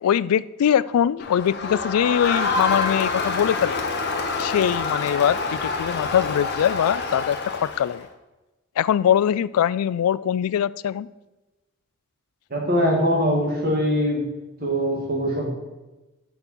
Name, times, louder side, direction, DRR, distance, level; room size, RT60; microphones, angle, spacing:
voice 1, 0.0-3.8 4.4-8.1 8.8-11.1, left 9 dB, 80° left, 18 dB, 0.3 m, -22 dB
Crowd, 1.2-8.0, left 4 dB, 50° left, 1.1 m, -27 dB
voice 2, 12.5-14.3 14.6-15.6, equal, 45° right, 0 dB, 1.9 m, -22 dB
7.1 x 5.2 x 6.2 m, 1.1 s
head